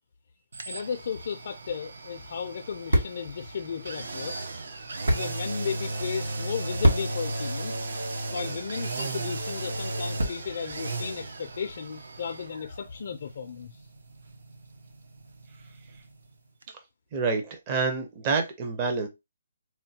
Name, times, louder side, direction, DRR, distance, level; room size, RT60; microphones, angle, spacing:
sound 1, 0.5-16.3 16.6-16.7, right 2 dB, 70° right, 0.7 m, -36 dB
voice 1, 0.7-4.4 5.1-7.9 8.3-13.8, left 6 dB, 50° left, 0.4 m, -35 dB
sound 2, 1.7-10.7, equal, 85° right, 1.1 m, -32 dB
voice 2, 17.1-19.1, right 4 dB, 25° right, 0.6 m, -27 dB
4.2 x 2.2 x 2.7 m
hypercardioid pair, 165°, 0 cm